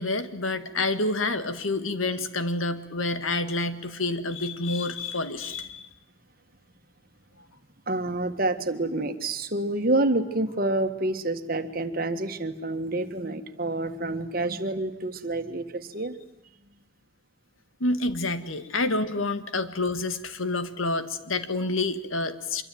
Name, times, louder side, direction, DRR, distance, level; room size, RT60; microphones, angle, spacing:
voice 1, 0.0-5.9 17.8-22.6, left 2 dB, 85° left, 10 dB, 1.9 m, -28 dB
voice 2, 7.9-16.2, right 2 dB, 45° right, 8 dB, 1.7 m, -28 dB
25.0 x 23.5 x 9.3 m, 0.83 s
head